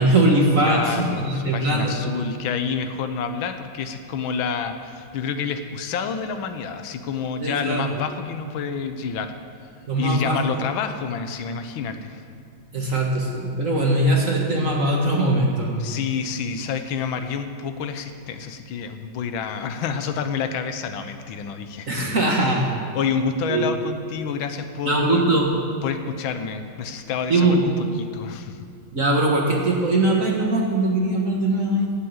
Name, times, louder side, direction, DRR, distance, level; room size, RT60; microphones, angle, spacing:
voice 1, 0.0-2.3 7.4-7.8 9.9-10.4 12.7-15.8 21.9-22.7 23.5-23.7 24.8-25.5 27.3-27.6 28.9-31.9, right 2 dB, 45° right, -1 dB, 1.9 m, -21 dB
voice 2, 0.6-9.3 10.0-12.2 12.8-13.0 15.8-22.6 22.9-25.4 25.8-27.7 28.0-28.7, left 6 dB, 75° left, 8 dB, 1.7 m, -28 dB
17.5 x 8.7 x 8.0 m, 2.3 s
omnidirectional pair, 2.2 m